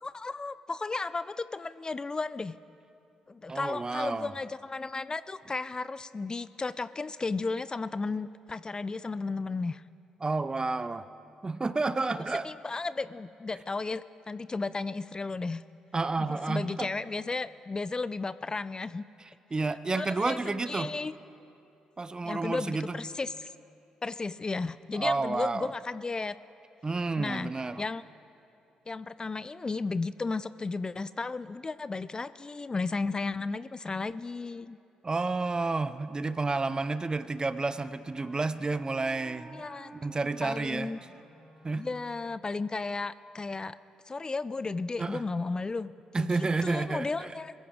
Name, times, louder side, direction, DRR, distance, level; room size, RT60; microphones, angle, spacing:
voice 1, 0.0-2.6 3.3-9.8 12.1-15.6 16.2-19.0 19.9-21.1 22.2-23.5 24.0-26.3 27.2-27.5 27.8-28.0 28.9-34.8 39.5-41.0 41.8-43.8 44.1-47.5, left 3 dB, 30° left, 16 dB, 0.4 m, -34 dB
voice 2, 3.5-4.3 10.2-11.1 11.4-12.5 15.9-16.9 19.5-20.9 22.0-23.0 24.9-25.7 26.8-27.8 35.0-39.6 39.9-40.9 41.6-41.9 45.0-45.2 46.1-47.3, right 3 dB, 30° right, 15 dB, 0.6 m, -30 dB
Wind instrument woodwind instrument, 37.1-42.5, right 1 dB, ahead, 3.1 m, -53 dB
22.0 x 15.0 x 3.7 m, 2.7 s
hypercardioid pair, 40°, 3 cm